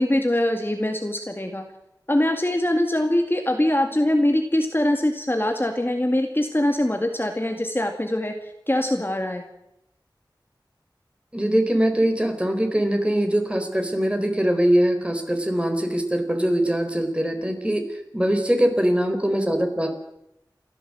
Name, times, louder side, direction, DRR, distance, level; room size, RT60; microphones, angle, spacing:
voice 1, 0.0-1.6 2.1-8.3 8.7-9.4, left 1 dB, 25° left, 4 dB, 2.0 m, -23 dB
voice 2, 11.3-19.9, right 1 dB, 15° right, 5 dB, 4.1 m, -22 dB
29.0 x 12.0 x 7.7 m, 0.83 s
wide cardioid pair, 50°, 8 cm